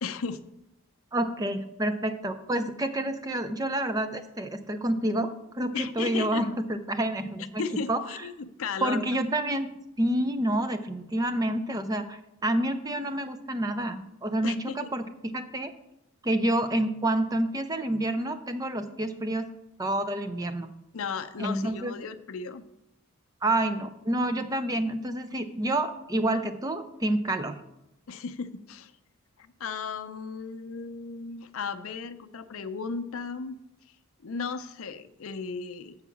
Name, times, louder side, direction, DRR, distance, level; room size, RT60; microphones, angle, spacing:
voice 1, 0.0-0.4 5.7-6.4 7.6-9.0 14.4-14.9 20.9-22.6 28.1-28.9 29.6-33.6 34.2-35.9, left 5 dB, 70° left, 9 dB, 0.5 m, -35 dB
voice 2, 1.1-7.6 7.9-8.0 8.8-9.7 10.0-15.7 16.2-19.5 19.8-20.7 21.4-21.9 23.4-27.5, right 1 dB, 15° right, 10 dB, 0.4 m, -28 dB
7.2 x 4.7 x 6.9 m, 0.89 s
head